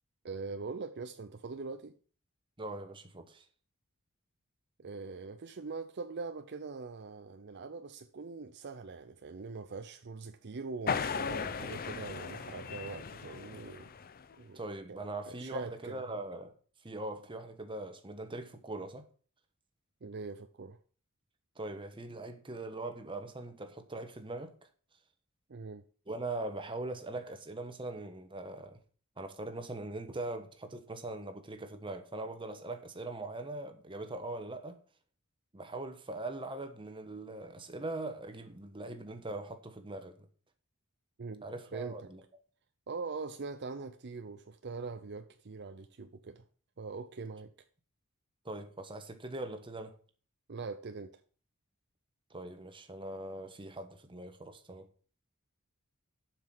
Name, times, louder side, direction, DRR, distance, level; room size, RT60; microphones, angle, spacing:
voice 1, 0.2-1.9 4.8-13.9 14.4-14.6 14.9-15.0 15.3-16.2 20.0-20.8 25.5-25.8 41.2-41.4 41.7-42.1 42.9-46.4 46.8-47.5 50.5-51.1, right 4 dB, 50° right, 0.6 m, -42 dB
voice 2, 2.6-3.4 14.5-16.5 16.8-19.0 21.6-24.5 26.1-28.8 29.2-34.8 35.5-40.3 41.4-42.2 48.4-50.0 52.3-54.9, right 2 dB, 25° right, 1.2 m, -41 dB
sound 1, 10.9-14.4, left 6 dB, 45° left, 0.6 m, -37 dB
7.5 x 6.0 x 7.5 m
head